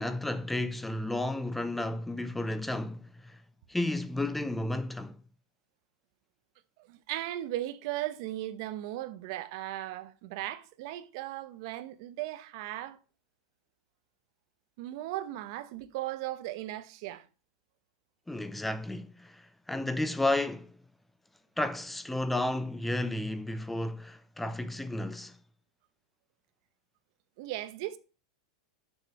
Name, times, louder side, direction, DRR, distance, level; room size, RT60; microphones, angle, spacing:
voice 1, 0.0-3.4 3.7-5.2 18.3-20.8 21.6-25.4, left 1 dB, 5° left, 0.5 m, -32 dB
voice 2, 6.9-13.0 14.8-17.2 27.4-28.0, right 14 dB, 50° right, 0.9 m, -37 dB
7.4 x 6.8 x 4.2 m
supercardioid pair, 165°, 3 cm